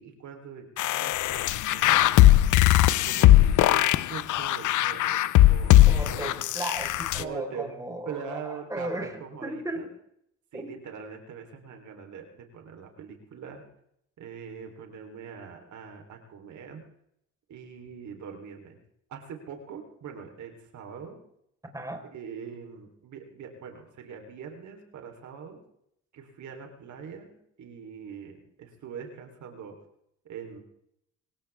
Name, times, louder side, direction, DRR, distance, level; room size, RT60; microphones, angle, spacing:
voice 1, 0.0-2.2 3.1-6.4 7.2-7.7 8.1-9.9 10.5-13.6 14.2-16.8 17.5-18.8 19.1-21.2 22.1-25.6 26.1-29.8 30.2-30.6, right 6 dB, 70° right, 3 dB, 4.0 m, -42 dB
sound 1, 0.8-7.2, left 14 dB, 80° left, 0.8 m, -19 dB
voice 2, 5.8-8.4 8.7-9.1 9.4-9.8 10.5-10.7 21.7-22.0, right 1 dB, 10° right, 2 dB, 4.7 m, -35 dB
25.0 x 16.0 x 3.6 m, 0.73 s
cardioid pair, 90°, 30 cm